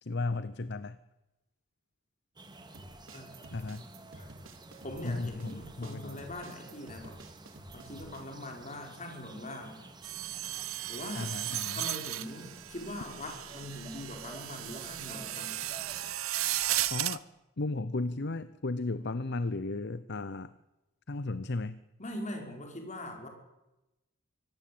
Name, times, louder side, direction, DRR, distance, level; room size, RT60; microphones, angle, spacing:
voice 1, 0.0-1.0 3.5-3.9 5.0-6.2 11.2-11.8 16.9-17.3 17.6-20.5 21.1-21.8, left 2 dB, 55° left, 15 dB, 0.8 m, -35 dB
sound 1, 2.4-16.1, right 2 dB, 20° right, 2.5 m, -52 dB
sound 2, 2.7-8.3, right 1 dB, 75° right, 2.9 m, -51 dB
voice 2, 4.8-7.2 7.7-9.8 10.9-11.3 11.7-15.6 22.0-23.3, left 1 dB, 35° left, 3 dB, 5.2 m, -42 dB
sound 3, 10.0-17.2, right 14 dB, 90° right, 0.9 m, -35 dB
24.5 x 18.5 x 8.7 m, 0.99 s
head